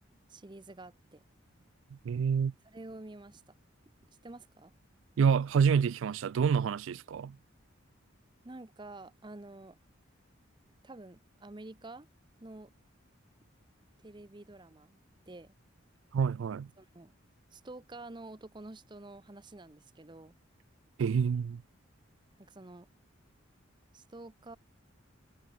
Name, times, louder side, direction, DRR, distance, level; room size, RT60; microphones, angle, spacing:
voice 1, 0.3-1.2 2.7-3.5 4.1-4.7 8.4-9.8 10.8-12.1 12.4-12.7 14.0-15.0 15.3-15.5 16.8-17.1 17.5-20.3 22.4-22.9 23.9-24.6, right 2 dB, 20° right, 0.8 m, -48 dB
voice 2, 1.9-2.5 5.2-7.4 16.1-16.7 21.0-21.6, right 6 dB, 70° right, 0.3 m, -27 dB
head